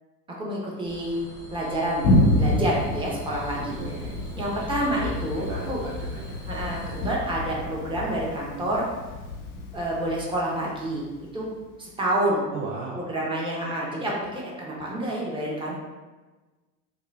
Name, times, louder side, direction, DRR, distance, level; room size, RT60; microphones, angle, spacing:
voice 1, 0.4-1.2 1.5-3.7 4.3-5.8 6.5-8.8 9.7-11.5 11.8-12.4 12.9-15.8, right 1 dB, 10° right, -5 dB, 1.0 m, -28 dB
sound 1, 0.8-7.1, left 1 dB, 10° left, 0.3 m, -44 dB
Thunder, 2.0-11.5, left 1 dB, 45° left, 0.8 m, -28 dB
voice 2, 3.7-4.2 5.3-6.4 12.5-13.0, right 4 dB, 40° right, -3 dB, 0.6 m, -36 dB
3.9 x 2.2 x 3.3 m, 1.2 s
hypercardioid pair, 90°, 49 cm